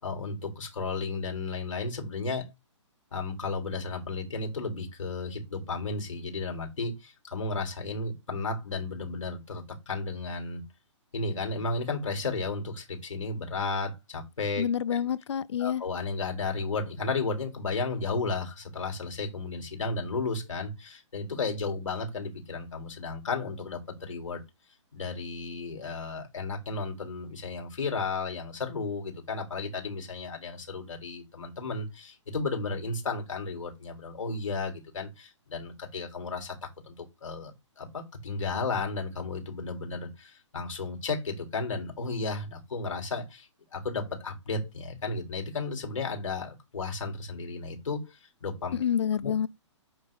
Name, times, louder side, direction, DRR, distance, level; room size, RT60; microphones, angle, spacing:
voice 1, 0.0-2.5 3.1-10.6 11.1-15.0 15.6-24.4 24.9-36.6 36.9-37.5 37.8-43.5 43.7-48.7 49.2-49.5, left 3 dB, 85° left, 3.6 m, -33 dB
voice 2, 14.6-15.8 48.7-49.5, left 8 dB, 60° left, 0.6 m, -28 dB
8.7 x 3.9 x 3.8 m
hypercardioid pair, 155°, 16 cm